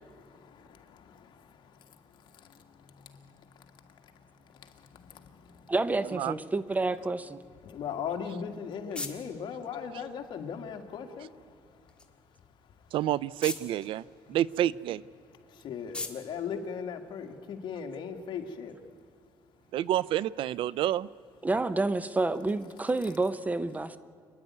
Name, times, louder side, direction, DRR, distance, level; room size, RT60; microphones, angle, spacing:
voice 1, 5.7-7.4 21.4-24.0, right 2 dB, 15° right, 14 dB, 0.7 m, -29 dB
voice 2, 7.7-11.3 15.6-18.7, left 7 dB, 60° left, 4 dB, 2.0 m, -37 dB
sound 1, 8.1-17.6, left 2 dB, 10° left, 1.8 m, -46 dB
voice 3, 12.9-14.0 14.3-15.0 19.7-21.1, right 12 dB, 70° right, 22 dB, 0.4 m, -28 dB
27.5 x 10.5 x 9.5 m, 2.3 s
cardioid pair, 115°, 9 cm